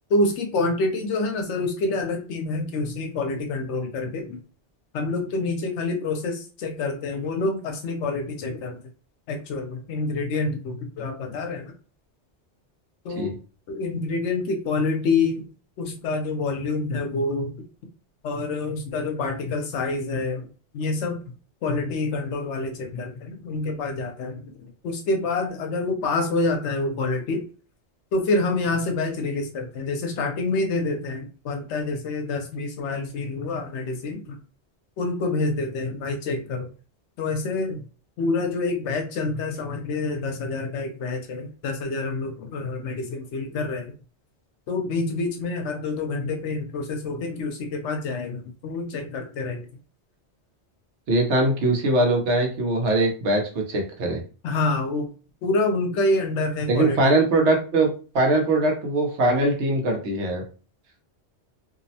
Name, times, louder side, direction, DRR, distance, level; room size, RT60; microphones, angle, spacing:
voice 1, 0.1-4.4 4.9-8.8 9.3-11.7 13.0-13.4 13.7-15.5 15.8-17.6 18.2-20.5 20.7-21.2 21.6-27.5 28.1-34.4 35.0-36.7 37.2-37.8 38.2-43.9 44.7-49.7 54.4-55.1 55.4-57.2, left 3 dB, 80° left, 5 dB, 0.9 m, -27 dB
voice 2, 51.1-54.2 56.7-60.4, right 2 dB, 80° right, 2 dB, 1.0 m, -21 dB
2.7 x 2.0 x 2.7 m, 0.37 s
omnidirectional pair, 1.2 m